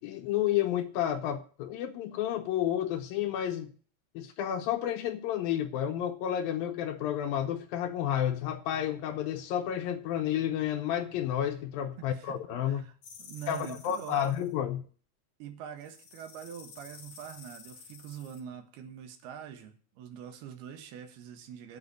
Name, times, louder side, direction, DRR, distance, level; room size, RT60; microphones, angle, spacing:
voice 1, 0.0-3.7 4.2-12.9 13.5-14.8, left 10 dB, 75° left, 2.4 m, -31 dB
voice 2, 12.0-12.4 12.6-14.4 15.4-21.8, right 9 dB, 75° right, 3.2 m, -44 dB
sound 1, 13.0-14.5 15.8-18.4, left 6 dB, 50° left, 2.9 m, -51 dB
9.7 x 8.4 x 8.2 m
omnidirectional pair, 4.7 m